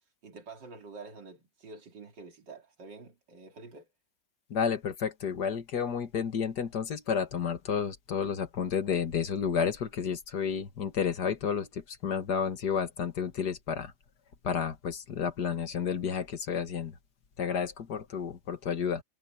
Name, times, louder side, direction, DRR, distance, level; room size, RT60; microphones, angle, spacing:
voice 1, 0.2-3.9, right 4 dB, 85° right, 3.4 m, -48 dB
voice 2, 4.5-13.9 14.4-16.9 17.4-19.0, left 7 dB, 70° left, 2.2 m, -31 dB
omnidirectional pair, 1.9 m